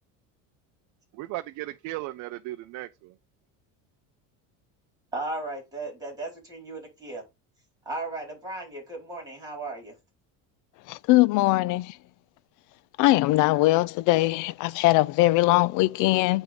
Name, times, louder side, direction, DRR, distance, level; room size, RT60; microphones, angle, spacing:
voice 1, 1.1-3.1, right 17 dB, 55° right, 0.5 m, -36 dB
voice 2, 5.1-7.2 7.8-10.0, right 2 dB, 10° right, 4.7 m, -35 dB
voice 3, 10.9-11.9 13.0-16.4, left 18 dB, 55° left, 0.5 m, -21 dB
9.3 x 3.6 x 3.7 m
cardioid pair, 140°, 37 cm